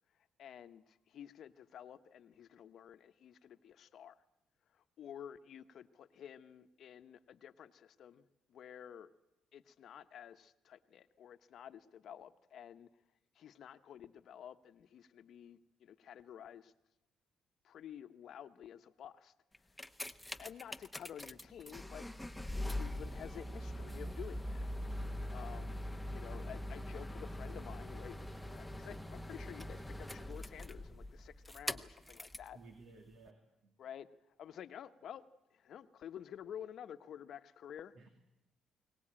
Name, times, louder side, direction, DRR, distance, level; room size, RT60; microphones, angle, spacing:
voice 1, 0.4-4.2 4.7-9.1 9.5-12.9 13.3-16.7 17.6-19.3 20.4-22.1 22.7-24.7 25.3-25.8 26.1-32.6 33.8-34.1 34.4-35.2 35.5-37.9, left 9 dB, 70° left, 10 dB, 1.0 m, -51 dB
sound 1, 19.5-32.5 33.3-33.4, left 1 dB, 5° left, 1.0 m, -42 dB
voice 2, 32.5-33.7 38.0-38.1, right 3 dB, 75° right, 5 dB, 2.6 m, -57 dB
22.5 x 19.0 x 8.8 m, 0.91 s
cardioid pair, 90°, 0 cm